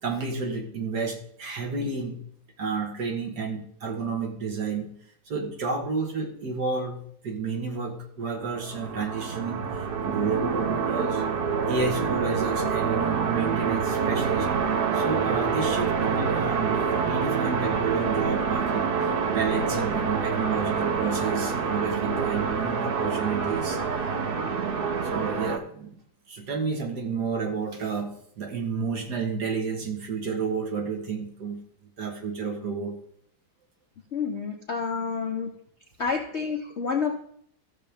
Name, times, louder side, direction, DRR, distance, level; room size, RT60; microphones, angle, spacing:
voice 1, 0.0-2.2 2.6-4.9 5.3-11.2 11.7-14.5 14.9-23.8 25.0-26.0 26.3-31.6 32.0-33.0, right 4 dB, 55° right, 2 dB, 2.0 m, -31 dB
sound 1, 8.4-25.6, right 6 dB, 80° right, 0.5 m, -27 dB
voice 2, 34.1-35.5 36.0-37.2, left 5 dB, 55° left, 2 dB, 0.8 m, -29 dB
14.0 x 6.6 x 3.5 m, 0.65 s
omnidirectional pair, 2.1 m